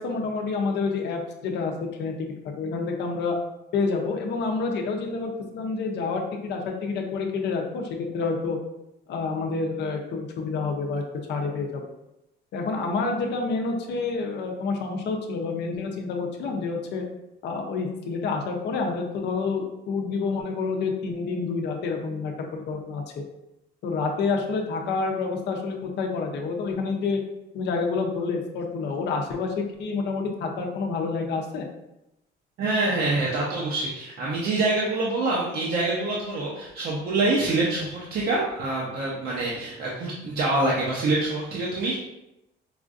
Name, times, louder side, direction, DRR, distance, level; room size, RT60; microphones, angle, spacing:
voice 1, 0.0-3.4 3.7-8.6 9.1-11.0 11.3-11.8 12.5-17.0 17.4-23.2 23.8-27.2 27.5-31.7, left 4 dB, 60° left, 2 dB, 0.6 m, -28 dB
voice 2, 32.6-41.9, right 2 dB, 50° right, -4 dB, 0.7 m, -25 dB
4.8 x 2.5 x 2.4 m, 0.90 s
cardioid pair, 160°, 20 cm